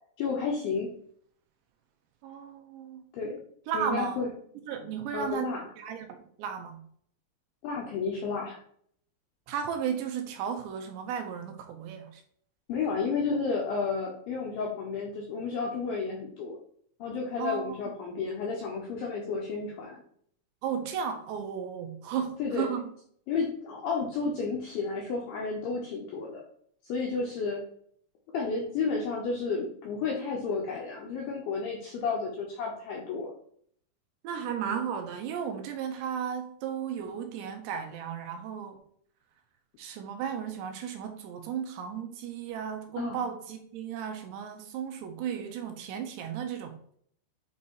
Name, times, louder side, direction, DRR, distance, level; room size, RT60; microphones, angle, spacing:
voice 1, 0.2-0.9 3.1-3.4 3.7-4.3 5.1-5.7 7.6-8.6 12.7-16.6 17.0-20.0 22.4-22.7 23.3-26.4 26.8-27.6 28.3-33.3 43.0-43.2, left 4 dB, 85° left, 2.1 m, -32 dB
voice 2, 2.2-3.1 3.7-4.2 4.7-6.8 9.5-12.2 17.4-17.8 20.6-22.9 34.2-38.8 39.8-46.8, right 8 dB, 80° right, 2.6 m, -34 dB
8.4 x 2.8 x 4.5 m
omnidirectional pair, 5.4 m